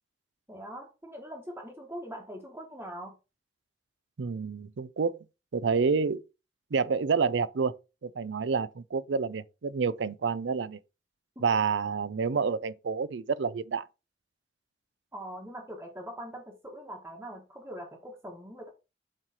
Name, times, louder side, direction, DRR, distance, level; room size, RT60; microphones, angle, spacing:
voice 1, 0.5-3.1 15.1-18.7, equal, 15° right, 1.2 m, -42 dB
voice 2, 4.2-5.2 5.5-6.2 6.7-7.7 8.0-10.8 11.4-13.9, right 5 dB, 85° right, 0.5 m, -28 dB
7.5 x 3.2 x 4.3 m
head